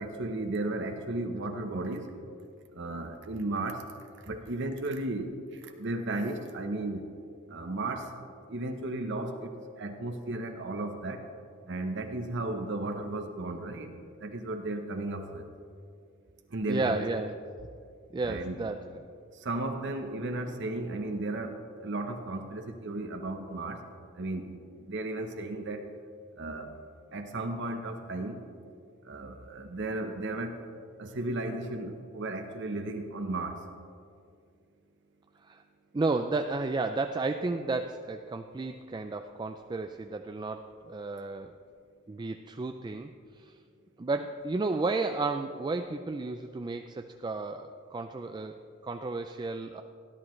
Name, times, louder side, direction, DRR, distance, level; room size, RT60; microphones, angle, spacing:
voice 1, 0.0-2.1 2.7-3.9 4.2-7.1 7.5-8.1 8.5-11.2 11.7-13.9 14.2-15.5 16.5-17.1 18.2-18.6 19.4-23.8 24.2-24.6 24.9-25.9 26.4-26.7 27.1-28.4 29.0-30.6 31.0-33.6, right 2 dB, 60° right, 5 dB, 0.9 m, -34 dB
voice 2, 16.7-17.4 18.1-18.8 35.4-35.6 35.9-41.5 42.1-43.1 43.4-43.5 44.0-49.8, right 3 dB, 20° right, 6 dB, 0.3 m, -32 dB
17.0 x 11.0 x 3.2 m, 2.3 s
head